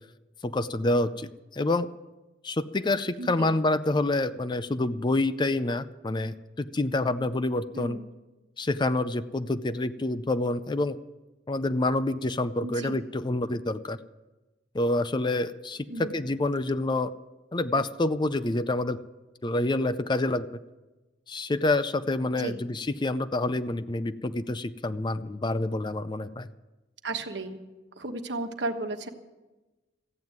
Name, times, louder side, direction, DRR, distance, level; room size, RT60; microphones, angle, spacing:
voice 1, 0.4-1.9 2.4-8.0 8.6-11.0 11.5-14.0 14.7-17.1 17.5-19.0 19.4-20.5 21.3-26.5, left 2 dB, 25° left, 13 dB, 0.4 m, -27 dB
voice 2, 3.2-3.6 7.7-8.1 12.6-12.9 15.9-16.3 22.4-22.6 27.0-27.6 28.0-29.1, right 2 dB, 65° right, 6 dB, 1.3 m, -34 dB
14.5 x 9.1 x 9.4 m, 1.1 s
head